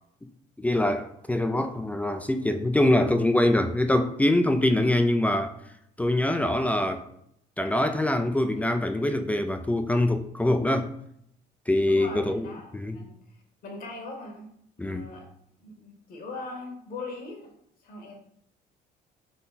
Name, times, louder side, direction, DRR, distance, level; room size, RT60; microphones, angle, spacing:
voice 1, 0.6-5.5 6.0-7.1 7.6-10.9 11.7-13.0 14.8-15.1, left 1 dB, 10° left, 0.3 m, -24 dB
voice 2, 11.9-13.1 13.6-14.5 14.8-15.2 15.6-17.5 17.8-18.1, left 3 dB, 60° left, 1.3 m, -40 dB
3.8 x 3.3 x 4.0 m
cardioid pair, 110°, 17 cm